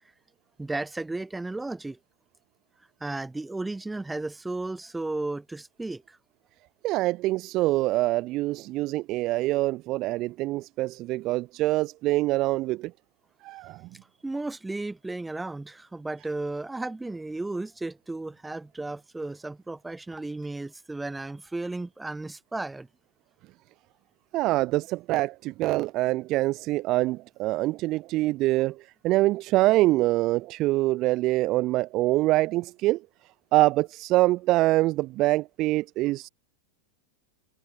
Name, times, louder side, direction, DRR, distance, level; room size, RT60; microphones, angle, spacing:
voice 1, 0.6-2.0 3.0-6.2 14.2-22.9, right 2 dB, 5° right, 1.8 m, -34 dB
voice 2, 6.8-12.9 13.4-13.9 24.3-33.0 33.5-36.3, right 18 dB, 40° right, 0.8 m, -25 dB
figure-of-eight pair, 90°, 0 cm